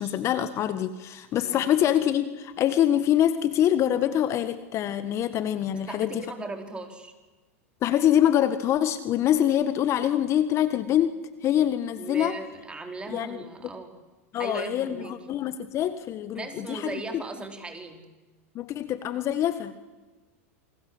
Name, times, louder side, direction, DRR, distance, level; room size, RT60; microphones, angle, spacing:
voice 1, 0.0-6.2 7.8-12.3 13.1-13.4 14.3-17.2 18.5-19.7, left 11 dB, 40° left, 12 dB, 1.7 m, -25 dB
voice 2, 5.7-7.1 12.0-13.9 14.4-15.1 16.3-18.1, right 3 dB, 15° right, 6 dB, 4.6 m, -38 dB
28.5 x 25.5 x 8.0 m, 1.2 s
hypercardioid pair, 115°, 8 cm